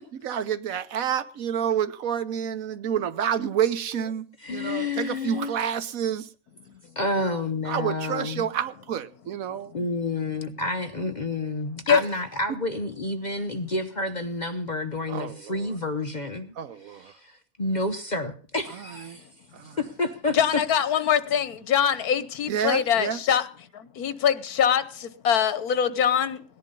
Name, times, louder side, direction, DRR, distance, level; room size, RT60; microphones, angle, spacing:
voice 1, 0.2-6.3 7.1-9.8 10.8-10.9 11.9-12.1 15.1-15.7 16.6-17.1 18.7-19.2 19.5-19.8 22.5-23.2, right 9 dB, 65° right, 1.3 m, -29 dB
voice 2, 4.4-5.5 7.0-8.5 9.7-16.5 16.8-19.2 19.8-20.6, left 2 dB, 35° left, 0.8 m, -29 dB
voice 3, 20.3-23.5 23.7-26.4, left 8 dB, 80° left, 1.5 m, -23 dB
17.5 x 10.5 x 5.3 m
omnidirectional pair, 1.6 m